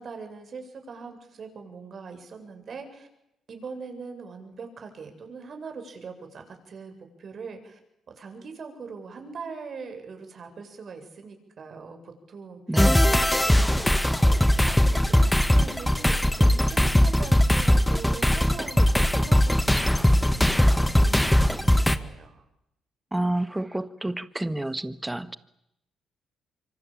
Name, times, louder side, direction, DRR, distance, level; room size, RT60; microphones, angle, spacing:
voice 1, 0.0-3.1 3.5-7.8 8.2-22.4, right 4 dB, 50° right, 6 dB, 7.8 m, -42 dB
voice 2, 12.7-13.0 23.1-25.3, right 1 dB, 10° right, 13 dB, 1.6 m, -29 dB
sound 1, 12.8-22.0, left 1 dB, 5° left, 2.1 m, -20 dB
26.5 x 25.0 x 8.9 m, 0.81 s
supercardioid pair, 75°, 0 cm